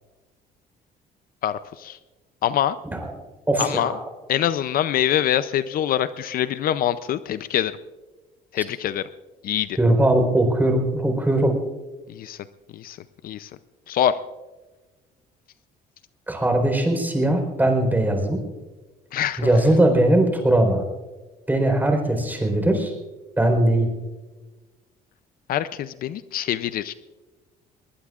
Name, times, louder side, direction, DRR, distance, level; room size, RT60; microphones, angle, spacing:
voice 1, 1.4-2.0 2.4-2.8 3.6-3.9 4.3-7.7 8.5-9.1 9.4-9.8 12.1-12.4 12.7-13.0 13.2-13.5 13.9-14.2 19.1-19.5 25.5-26.9, left 11 dB, 60° left, 14 dB, 0.5 m, -24 dB
voice 2, 3.5-4.1 8.6-8.7 9.8-11.5 16.3-18.4 19.4-20.8 21.5-22.9 23.4-23.9, right 1 dB, 10° right, 3 dB, 4.1 m, -20 dB
21.5 x 20.0 x 2.5 m, 1.2 s
cardioid pair, 110°, 17 cm